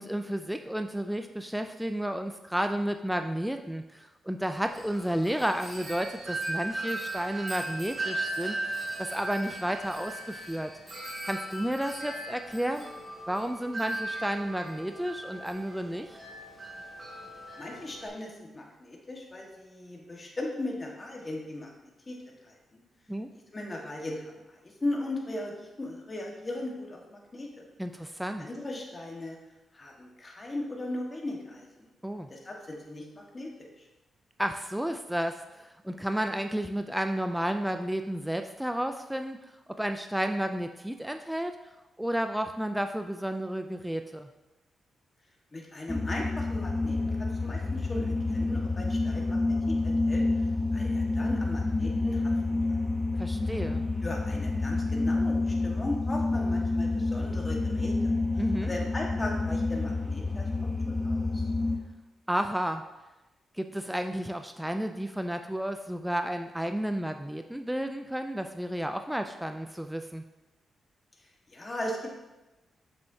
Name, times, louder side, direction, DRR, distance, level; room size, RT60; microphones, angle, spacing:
voice 1, 0.0-8.6 9.0-10.7 11.3-12.9 13.3-16.2 23.1-23.3 27.8-28.5 32.0-32.3 34.4-41.5 42.0-44.3 53.1-53.9 58.4-58.7 62.3-62.9 63.6-70.2, equal, 5° right, 6 dB, 0.4 m, -32 dB
Wind chime, 4.7-18.1, right 2 dB, 35° right, 2.3 m, -38 dB
voice 2, 17.6-21.7 22.1-22.8 23.5-27.6 28.4-29.4 29.7-31.9 32.3-33.8 45.5-50.5 50.7-52.3 54.0-58.1 58.6-60.5 60.9-61.4 71.5-72.1, left 1 dB, 30° left, -1 dB, 1.5 m, -38 dB
sound 1, 45.9-61.8, left 3 dB, 10° left, 1.0 m, -28 dB
7.3 x 6.3 x 2.8 m, 1.0 s
cardioid pair, 75°, 0 cm